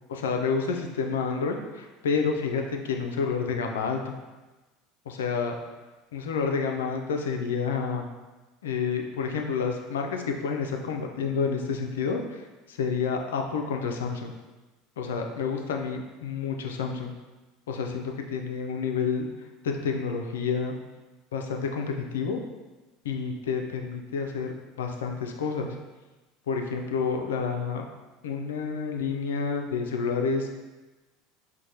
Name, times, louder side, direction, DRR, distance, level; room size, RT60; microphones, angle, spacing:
voice 1, 0.1-4.1 5.1-5.6 6.1-8.0 8.6-14.3 15.0-17.2 17.7-19.3 19.6-20.8 21.3-22.4 23.0-25.8 26.5-27.8 28.2-30.5, left 5 dB, 85° left, 3 dB, 0.4 m, -29 dB
4.5 x 2.1 x 2.7 m, 1.2 s
hypercardioid pair, 85°, 0 cm